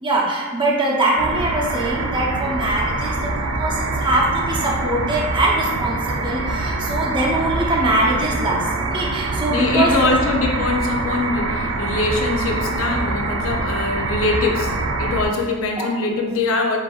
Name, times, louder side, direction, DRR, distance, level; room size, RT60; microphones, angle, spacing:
voice 1, 0.0-10.1 15.8-15.9, right 2 dB, 25° right, -4 dB, 0.7 m, -22 dB
sound 1, 1.2-15.3, right 2 dB, 70° right, 0.5 m, -24 dB
voice 2, 9.5-14.7 15.0-16.8, left 3 dB, 75° left, 1 dB, 0.6 m, -22 dB
7.0 x 2.7 x 2.4 m, 1.4 s
head